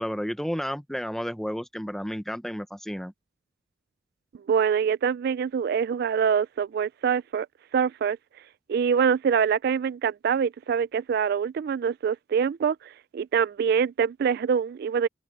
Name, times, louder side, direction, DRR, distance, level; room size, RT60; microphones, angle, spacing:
voice 1, 0.0-3.1, equal, ahead, 0.8 m, -32 dB
voice 2, 4.5-7.5 7.7-8.2 8.7-15.1, right 7 dB, 55° right, 0.3 m, -25 dB
head